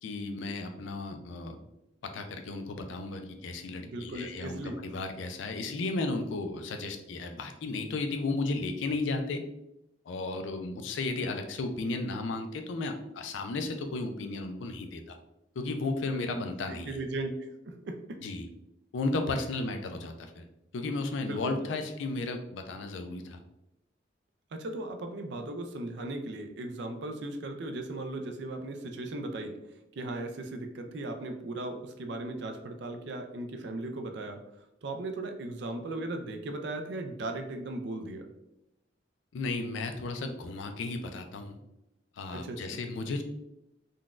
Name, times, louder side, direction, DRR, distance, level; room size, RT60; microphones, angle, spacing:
voice 1, 0.0-1.6 2.0-9.5 10.1-15.2 15.6-17.0 18.2-18.5 18.9-20.4 20.7-23.4 39.3-41.6 42.2-43.2, left 3 dB, 70° left, 6 dB, 0.4 m, -34 dB
voice 2, 3.8-4.8 16.0-18.2 21.2-21.7 24.5-29.6 30.0-38.3 42.3-42.8, right 2 dB, 60° right, 6 dB, 0.4 m, -37 dB
3.8 x 2.2 x 2.4 m, 0.87 s
head